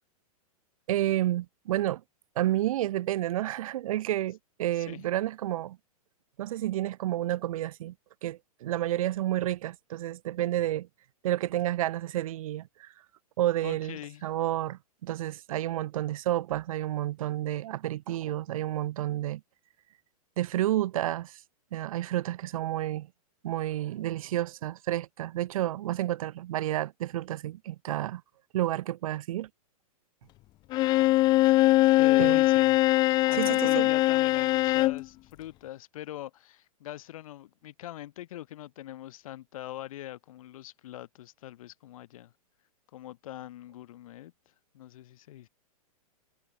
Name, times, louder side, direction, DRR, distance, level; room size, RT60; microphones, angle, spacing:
voice 1, 0.9-2.0 2.3-5.8 6.4-7.9 8.2-10.9 11.2-12.9 13.4-14.0 14.2-19.4 20.4-21.4 21.7-23.1 23.4-28.2 28.5-29.5 32.2-32.4 33.3-33.9, right 14 dB, 60° right, 5.0 m, -30 dB
voice 2, 4.7-5.1 13.6-14.2 32.0-32.9 33.3-42.3 42.9-44.3 44.7-45.5, left 13 dB, 60° left, 5.3 m, -42 dB
Bowed string instrument, 30.7-35.0, left 17 dB, 20° left, 0.4 m, -22 dB
hypercardioid pair, 140°, 19 cm